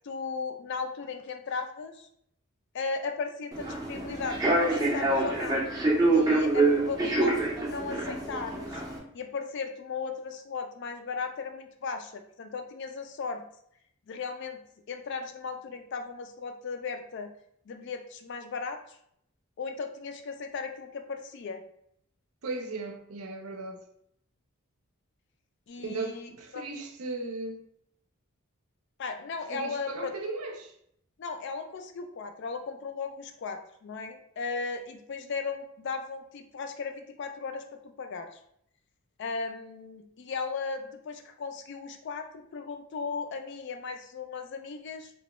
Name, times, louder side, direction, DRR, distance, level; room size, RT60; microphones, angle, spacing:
voice 1, 0.0-2.1 2.7-5.6 6.1-8.8 9.1-13.4 14.1-14.6 14.9-17.3 17.7-19.0 19.6-21.6 25.7-26.6 29.0-30.1 31.2-38.4 39.2-45.1, left 5 dB, 50° left, 0.3 m, -36 dB
Human voice / Subway metro underground, 3.5-9.0, right 2 dB, 15° right, 0.5 m, -26 dB
voice 2, 22.4-23.8 25.8-27.7 29.5-30.7, right 3 dB, 75° right, 0.5 m, -37 dB
2.9 x 2.2 x 3.0 m
head